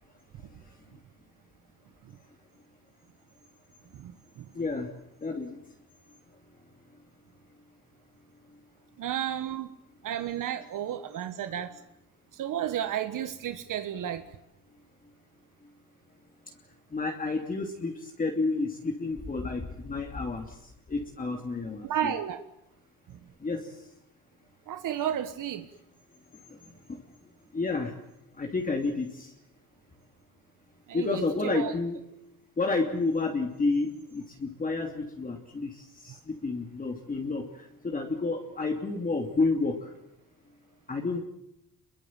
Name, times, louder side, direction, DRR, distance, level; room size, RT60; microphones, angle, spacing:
voice 1, 3.9-4.5 9.0-9.7 10.0-11.8 12.3-14.4 21.8-22.4 23.1-23.2 24.7-25.7 30.9-31.7, right 10 dB, 70° right, 9 dB, 1.5 m, -32 dB
voice 2, 4.5-4.9 5.2-5.6 16.9-22.1 23.4-23.9 26.5-27.0 27.5-27.9 28.3-29.3 30.9-32.0 32.6-39.9 40.9-41.2, left 3 dB, 25° left, 2 dB, 3.0 m, -30 dB
27.5 x 22.5 x 7.6 m, 0.84 s
cardioid pair, 135°, 33 cm